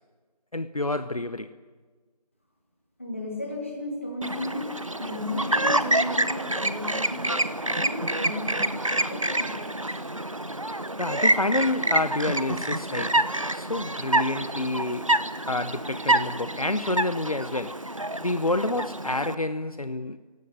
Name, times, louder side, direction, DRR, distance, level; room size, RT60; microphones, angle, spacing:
voice 1, 0.5-1.5 11.0-15.1 15.5-17.8 18.2-20.2, left 2 dB, 60° left, 0.8 m, -28 dB
voice 2, 3.0-10.0 15.4-15.5, left 2 dB, 20° left, 2.8 m, -35 dB
Chirp tweet, 4.2-19.3, right 1 dB, 50° right, 1.0 m, -27 dB
29.5 x 17.0 x 7.9 m
figure-of-eight pair, 180°, 21 cm